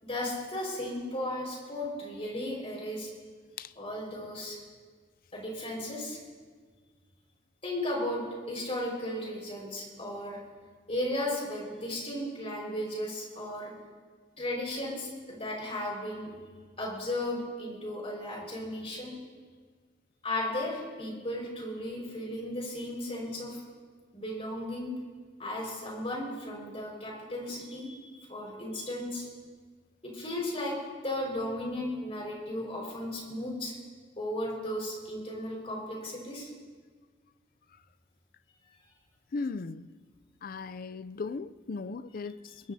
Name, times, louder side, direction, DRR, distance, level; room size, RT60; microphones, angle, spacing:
voice 1, 0.0-3.1 3.7-4.6 5.3-6.2 7.6-10.4 10.9-13.7 14.4-16.3 16.8-19.1 20.2-23.6 24.1-24.9 25.4-28.0 28.3-29.3 30.0-30.8 31.0-33.7 34.2-36.5, left 1 dB, 35° left, 5.1 m, -35 dB
voice 2, 39.3-39.9 40.4-42.7, left 4 dB, 50° left, 0.4 m, -37 dB
22.0 x 20.5 x 2.8 m
head